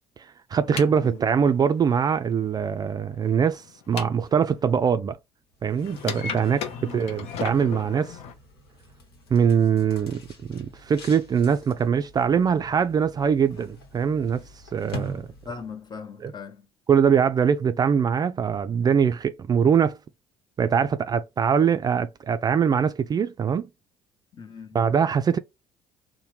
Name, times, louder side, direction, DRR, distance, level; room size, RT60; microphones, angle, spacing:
voice 1, 0.5-5.2 5.6-8.2 9.3-14.4 14.7-15.3 16.2-16.3 16.9-20.0 20.6-23.7 24.7-25.4, right 7 dB, 35° right, 0.3 m, -22 dB
sound 1, 0.6-4.7 5.8-8.3, left 7 dB, 60° left, 0.6 m, -37 dB
sound 2, 5.5-15.9, right 1 dB, 85° left, 1.0 m, -44 dB
voice 2, 15.5-16.6 24.3-24.8, left 5 dB, 35° left, 0.9 m, -39 dB
2.8 x 2.1 x 3.2 m
hypercardioid pair, 60°, 12 cm